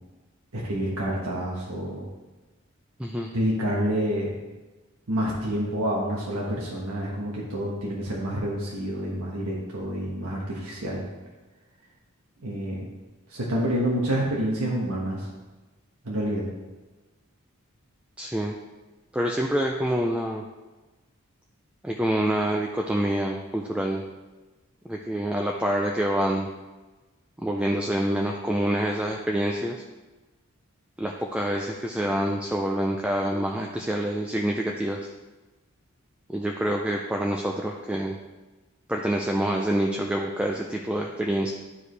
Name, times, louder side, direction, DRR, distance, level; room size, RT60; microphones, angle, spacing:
voice 1, 0.5-2.0 3.3-4.3 5.1-11.1 12.4-12.9 13.3-15.3 16.0-16.5, equal, 85° right, -4 dB, 1.3 m, -28 dB
voice 2, 3.0-3.3 18.2-18.6 19.1-20.4 21.8-24.0 24.9-26.5 27.4-29.8 31.0-35.1 36.3-38.2 38.9-41.5, right 1 dB, 5° right, 0 dB, 0.4 m, -26 dB
11.5 x 4.8 x 3.3 m, 1.2 s
head